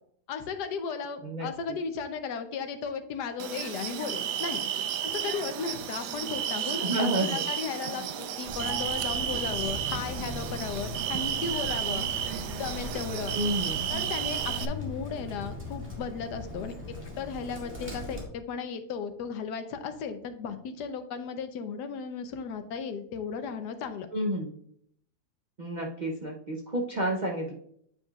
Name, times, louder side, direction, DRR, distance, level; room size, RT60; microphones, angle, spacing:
voice 1, 0.3-4.7 5.0-12.1 12.6-13.4 13.9-24.1, left 6 dB, 85° left, 8 dB, 1.3 m, -35 dB
voice 2, 1.2-1.8 6.8-7.4 13.3-13.9 24.1-24.5 25.6-27.5, right 1 dB, 40° right, -2 dB, 0.6 m, -30 dB
sound 1, 3.4-14.7, right 9 dB, 85° right, 1.2 m, -32 dB
Bird, 8.4-18.3, left 2 dB, 5° right, 1.8 m, -39 dB
8.8 x 5.3 x 2.4 m, 0.68 s
omnidirectional pair, 1.7 m